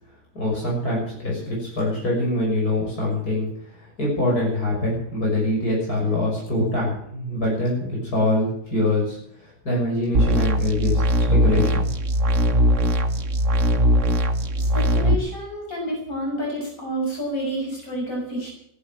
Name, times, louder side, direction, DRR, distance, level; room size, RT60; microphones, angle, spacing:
voice 1, 0.3-11.9, left 1 dB, 85° left, -3 dB, 6.7 m, -24 dB
sound 1, 10.1-15.1, equal, 55° right, 1.6 m, -20 dB
voice 2, 14.6-18.5, equal, 60° left, -2 dB, 7.2 m, -29 dB
15.5 x 11.0 x 7.4 m, 0.70 s
omnidirectional pair, 1.6 m